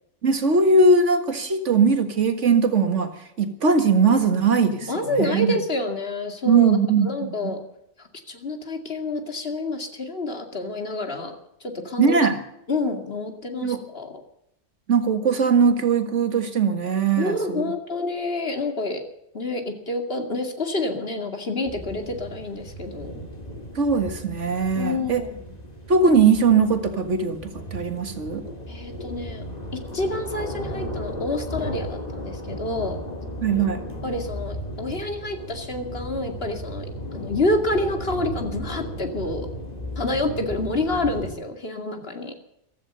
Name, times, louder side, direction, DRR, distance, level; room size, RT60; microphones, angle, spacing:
voice 1, 0.2-3.1 3.4-5.5 6.5-7.5 12.0-12.4 13.6-13.8 14.9-17.7 23.8-25.2 25.9-28.4 33.4-33.8, right 4 dB, 75° right, 7 dB, 2.1 m, -20 dB
voice 2, 4.9-6.8 7.0-7.6 8.0-12.1 12.7-14.2 17.2-19.0 19.3-23.1 24.8-25.6 28.7-29.5 29.7-33.0 34.0-39.5 40.0-42.4, left 2 dB, 55° left, 5 dB, 2.5 m, -28 dB
sound 1, 21.7-41.3, equal, 35° left, 3.1 m, -35 dB
15.5 x 13.5 x 6.8 m, 0.81 s
omnidirectional pair, 1.2 m